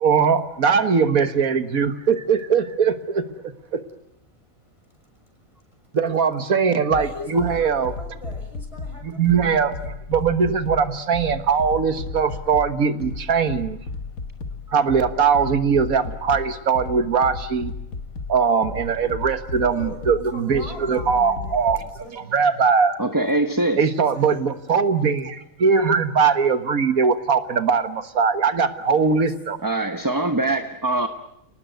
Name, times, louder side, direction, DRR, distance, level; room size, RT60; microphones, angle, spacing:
voice 1, 0.0-3.5 5.9-7.9 9.0-13.8 14.7-17.7 18.3-23.0 23.8-29.6, right 6 dB, 90° right, 10 dB, 1.9 m, -21 dB
sound 1, 6.9-21.9, left 3 dB, 80° left, 2.0 m, -34 dB
voice 2, 6.9-9.6 19.6-22.2 24.1-24.4 28.8-29.2, equal, 20° left, 4 dB, 6.3 m, -39 dB
voice 3, 23.0-23.9 29.6-31.1, right 2 dB, 15° right, 8 dB, 1.1 m, -23 dB
30.0 x 19.0 x 9.3 m, 0.78 s
omnidirectional pair, 1.4 m